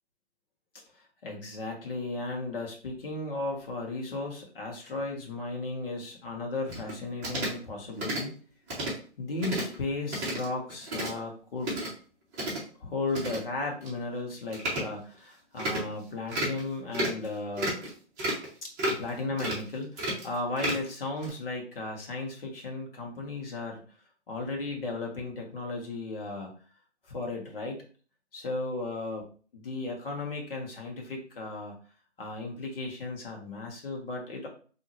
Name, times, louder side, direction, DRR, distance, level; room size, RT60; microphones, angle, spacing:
voice 1, 0.9-8.3 9.2-11.8 12.8-17.7 18.6-23.8 24.3-26.5 27.0-27.8 28.3-29.2 29.5-31.8 32.2-34.5, left 2 dB, 50° left, 0 dB, 1.3 m, -35 dB
sound 1, 6.7-6.9 7.2-7.6 8.0-8.2 8.7-8.9 9.4-9.7 10.1-10.4 10.7-11.1 11.6-11.9 12.3-12.6 13.1-13.4 13.8-13.9 14.5-14.8 15.6-15.8 16.3-16.6 16.9-17.2 17.6-17.9 18.2-18.5 18.8-19.1 19.4-19.6 20.0-20.9 21.2-21.3, right 1 dB, 15° right, 0.8 m, -31 dB
3.7 x 2.8 x 3.0 m, 0.41 s
figure-of-eight pair, 140°, 35 cm